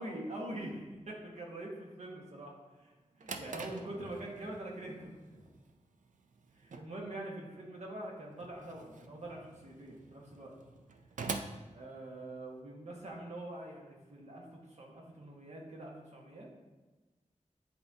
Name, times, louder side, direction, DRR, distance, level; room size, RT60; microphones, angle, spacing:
voice 1, 0.0-2.9 3.2-5.4 6.5-10.5 11.7-16.6, right 1 dB, 60° right, -2 dB, 1.5 m, -44 dB
Drawer open or close, 2.9-12.6, right 4 dB, 75° right, 0.5 m, -47 dB
10.0 x 3.8 x 2.8 m, 1.2 s
wide cardioid pair, 95°, 13 cm